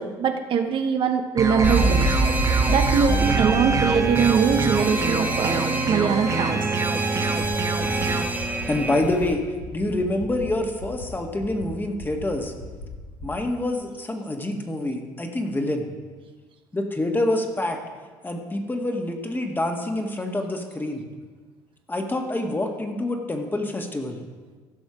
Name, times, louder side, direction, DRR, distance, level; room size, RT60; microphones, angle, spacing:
voice 1, 0.0-2.1 2.7-6.7, right 6 dB, 50° right, 6 dB, 0.9 m, -22 dB
sound 1, 1.4-8.2, right 3 dB, 30° right, 1.4 m, -25 dB
Alarm, 1.6-9.3, right 2 dB, 15° right, 1.5 m, -26 dB
sound 2, 7.4-7.5 7.8-8.1 8.4-8.7 9.0-9.3 9.6-9.9 10.2-10.5 10.8-11.1 11.4-11.7 12.0-12.3 12.6-12.9 13.2-13.4, right 1 dB, 80° left, 2.9 m, -37 dB
voice 2, 8.7-9.4 9.7-12.5 13.2-15.9 16.7-17.8 18.2-21.0 21.9-24.2, left 1 dB, 15° left, 3 dB, 1.8 m, -26 dB
15.5 x 6.2 x 5.0 m, 1.4 s
hypercardioid pair, 65°, 11 cm